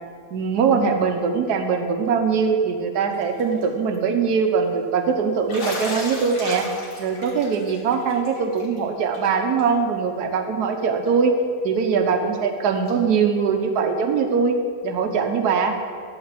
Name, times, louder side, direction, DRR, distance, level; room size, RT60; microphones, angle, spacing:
voice 1, 0.3-6.7 7.0-11.4 11.6-14.6 14.8-15.7, right 5 dB, 75° right, 5 dB, 1.4 m, -22 dB
Bathtub (filling or washing), 3.2-3.6 3.9-4.0 5.5-8.8 9.1-9.3 9.6-9.7 11.1-11.2 12.9-13.0, left 2 dB, 85° left, 2.4 m, -35 dB
11.0 x 4.9 x 7.5 m, 2.2 s
omnidirectional pair, 1.7 m